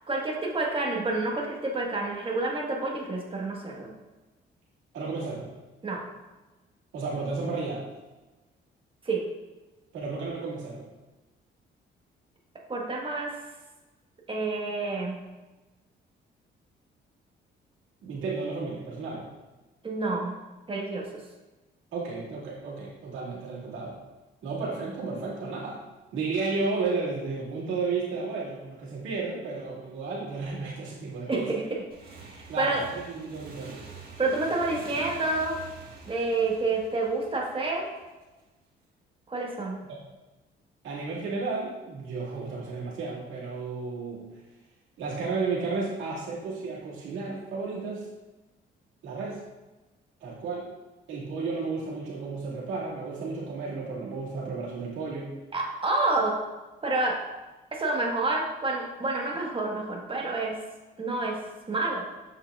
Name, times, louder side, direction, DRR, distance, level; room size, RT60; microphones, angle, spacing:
voice 1, 0.1-3.9 5.8-6.0 9.0-9.2 12.7-13.4 14.3-15.2 19.8-20.3 20.7-21.2 31.3-31.5 32.1-32.8 34.2-35.6 36.1-37.9 39.3-39.8 55.5-56.4 56.8-57.2 57.7-60.6 61.0-61.4 61.7-62.0, right 2 dB, 25° right, -1 dB, 1.4 m, -28 dB
voice 2, 4.9-5.5 6.9-7.9 9.9-10.9 18.0-19.3 21.9-24.0 24.4-25.8 26.1-31.5 32.5-33.9 39.9-40.0 40.8-44.3 45.0-48.1 49.0-49.4 50.2-50.7 51.1-55.3, right 4 dB, 85° right, -5 dB, 2.0 m, -33 dB
Motorcycle / Engine, 31.9-38.3, right 4 dB, 50° right, 1.5 m, -46 dB
7.6 x 5.7 x 2.4 m, 1.1 s
cardioid pair, 90°, 20 cm